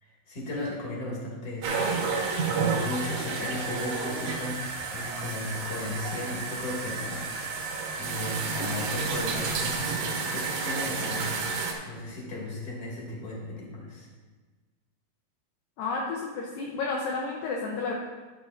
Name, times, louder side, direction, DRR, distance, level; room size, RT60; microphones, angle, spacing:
voice 1, 0.0-7.7 8.0-11.3 11.9-14.1, left 2 dB, 25° left, -4 dB, 2.6 m, -36 dB
sound 1, 1.6-11.7, right 4 dB, 80° right, 3.4 m, -31 dB
voice 2, 15.8-17.9, left 4 dB, 75° left, -1 dB, 2.2 m, -31 dB
11.5 x 11.5 x 2.6 m, 1.3 s
omnidirectional pair, 4.8 m